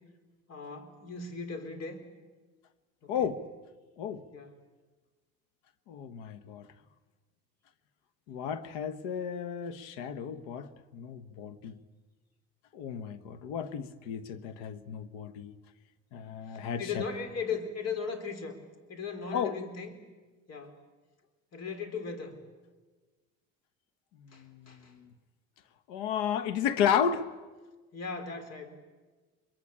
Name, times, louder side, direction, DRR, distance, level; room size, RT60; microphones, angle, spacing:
voice 1, 0.5-2.0 3.0-3.3 4.3-4.6 16.5-18.6 18.9-20.0 20.5-20.8 21.5-22.4 24.3-24.9 27.9-28.7, left 5 dB, 50° left, 4.2 m, -38 dB
voice 2, 3.1-3.4 4.0-4.2 5.9-6.7 8.3-11.8 12.7-15.5 16.1-17.0 19.3-19.6 24.2-24.7 25.9-27.3, left 8 dB, 85° left, 1.3 m, -33 dB
24.5 x 23.0 x 8.7 m
supercardioid pair, 95°, 32 cm